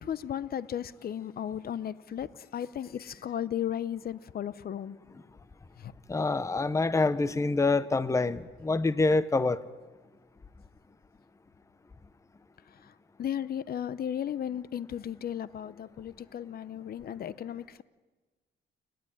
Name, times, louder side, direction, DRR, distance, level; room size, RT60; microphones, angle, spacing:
voice 1, 0.0-5.0 13.2-17.8, left 9 dB, 50° left, 17 dB, 0.8 m, -35 dB
voice 2, 6.1-9.6, left 3 dB, 15° left, 15 dB, 0.7 m, -26 dB
29.5 x 10.5 x 9.9 m, 1.3 s
cardioid pair, 90°, 20 cm